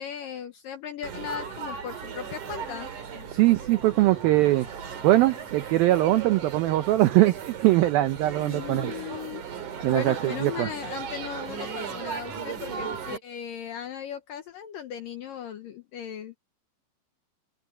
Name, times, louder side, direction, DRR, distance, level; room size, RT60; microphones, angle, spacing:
voice 1, 0.0-2.9 8.4-9.4 9.9-16.4, left 9 dB, 70° left, 2.1 m, -37 dB
Laughter / Chatter / Crowd, 1.0-13.2, right 7 dB, 50° right, 3.8 m, -37 dB
voice 2, 3.3-4.7 5.0-8.9 9.8-10.7, right 16 dB, 85° right, 2.1 m, -21 dB
open air
omnidirectional pair, 5.2 m